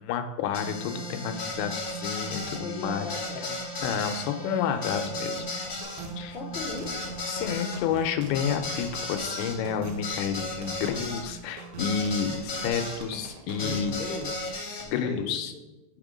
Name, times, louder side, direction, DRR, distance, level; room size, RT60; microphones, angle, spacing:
voice 1, 0.0-3.1 3.8-5.5 5.9-6.3 7.3-13.9 14.8-15.5, left 7 dB, 90° left, 7 dB, 2.5 m, -30 dB
sound 1, 0.5-13.0 13.6-14.9, left 2 dB, 60° left, 0.7 m, -35 dB
voice 2, 2.6-3.6 6.2-7.0 13.6-14.3 15.0-15.6, left 4 dB, 25° left, -7 dB, 1.4 m, -37 dB
sound 2, 5.8-14.4, right 4 dB, 85° right, 3.1 m, -43 dB
10.0 x 3.6 x 5.1 m, 0.99 s
omnidirectional pair, 4.4 m